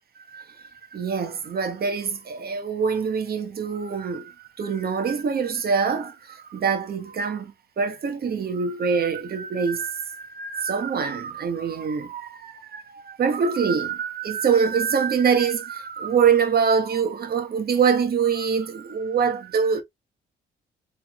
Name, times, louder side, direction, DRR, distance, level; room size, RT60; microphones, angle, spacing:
voice 1, 0.3-19.8, right 6 dB, 50° right, 1.2 m, -24 dB
4.5 x 3.6 x 2.3 m
cardioid pair, 90°, 20 cm